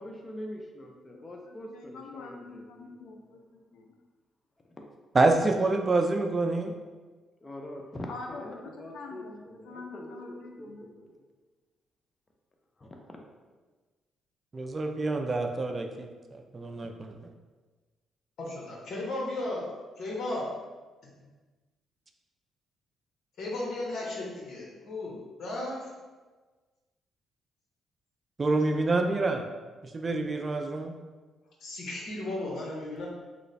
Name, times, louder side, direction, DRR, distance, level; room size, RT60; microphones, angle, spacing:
voice 1, 0.0-2.9 4.6-4.7 7.4-11.2 12.8-12.9, left 1 dB, 30° left, 1 dB, 0.5 m, -43 dB
voice 2, 1.1-3.9 8.1-10.9, left 3 dB, 85° left, 1 dB, 0.4 m, -45 dB
voice 3, 5.1-6.7 14.5-16.1 16.5-17.1 28.4-29.4 29.9-30.9, right 3 dB, 30° right, 4 dB, 0.3 m, -26 dB
voice 4, 18.4-19.7 20.0-20.5 23.4-25.9 31.6-33.1, left 2 dB, 65° left, -3 dB, 0.9 m, -35 dB
3.0 x 2.0 x 4.0 m, 1.3 s
cardioid pair, 90°, 0 cm